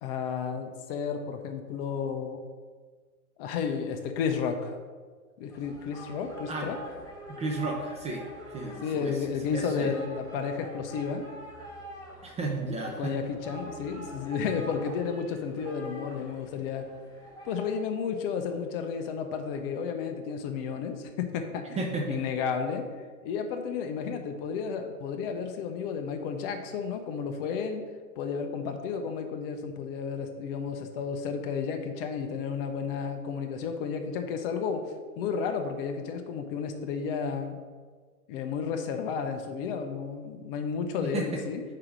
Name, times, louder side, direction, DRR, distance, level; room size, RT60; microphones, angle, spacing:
voice 1, 0.0-2.4 3.4-4.8 5.4-6.8 8.8-11.3 13.0-16.9 17.4-22.9 23.2-27.8 28.2-37.6 38.3-41.6, left 6 dB, 40° left, 6 dB, 0.7 m, -32 dB
sound 1, 5.5-17.8, right 1 dB, 10° left, 1.7 m, -45 dB
voice 2, 7.4-8.2 8.5-9.1 9.4-9.9 12.2-13.1 21.8-22.2 41.0-41.2, right 3 dB, 15° right, 1 dB, 0.6 m, -33 dB
5.1 x 4.8 x 6.0 m, 1.5 s
hypercardioid pair, 125°, 45 cm